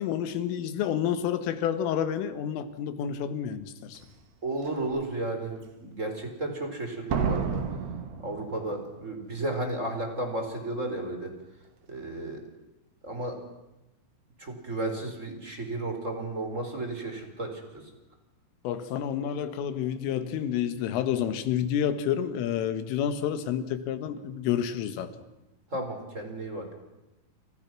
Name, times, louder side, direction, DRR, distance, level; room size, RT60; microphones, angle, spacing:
voice 1, 0.0-4.0 18.6-25.1, left 9 dB, 85° left, 4.2 m, -29 dB
Slam, 3.9-4.0 4.7-5.0 7.1-9.0 9.2-9.3, right 6 dB, 60° right, 4.1 m, -31 dB
voice 2, 4.4-7.6 8.2-11.3 11.9-12.5 13.0-13.4 14.4-17.9 25.7-26.7, right 2 dB, 15° right, 4.1 m, -33 dB
30.0 x 29.5 x 6.2 m
omnidirectional pair, 5.7 m